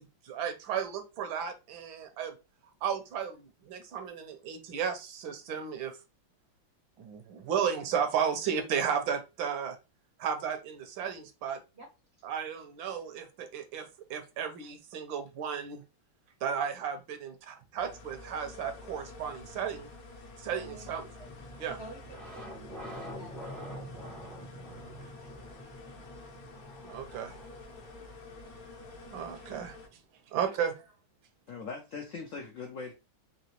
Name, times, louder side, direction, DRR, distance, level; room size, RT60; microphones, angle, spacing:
voice 1, 0.0-2.3 2.8-6.0 7.0-9.8 10.2-11.6 12.2-15.8 16.4-19.9 20.4-21.1 21.6-21.8 26.8-27.3 29.1-29.8 30.3-30.7, right 7 dB, 75° right, 8 dB, 1.4 m, -34 dB
sound 1, 17.8-29.9, left 2 dB, 60° left, 1.0 m, -49 dB
voice 2, 20.6-21.3 21.7-23.5, right 2 dB, 55° right, 2 dB, 0.7 m, -50 dB
sound 2, 21.2-30.0, equal, ahead, 0.4 m, -47 dB
voice 3, 31.5-32.9, left 4 dB, 80° left, 3 dB, 0.7 m, -40 dB
3.9 x 3.0 x 3.0 m, 0.27 s
omnidirectional pair, 2.2 m